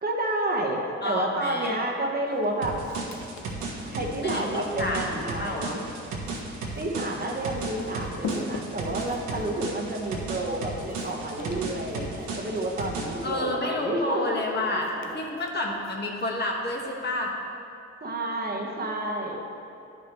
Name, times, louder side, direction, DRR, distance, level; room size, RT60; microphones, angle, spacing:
voice 1, 0.0-2.8 3.8-5.8 6.8-14.3 14.6-15.2 18.0-19.4, right 1 dB, 30° right, -1 dB, 1.0 m, -30 dB
voice 2, 1.0-1.7 4.2-5.8 13.2-17.3, left 2 dB, 35° left, -1 dB, 1.2 m, -30 dB
Walk footsteps, 2.3-17.3, left 4 dB, 65° left, 0.7 m, -46 dB
sound 1, 2.6-13.3, right 3 dB, 80° right, 1.3 m, -35 dB
10.5 x 5.2 x 3.0 m, 2.7 s
cardioid pair, 75°, 29 cm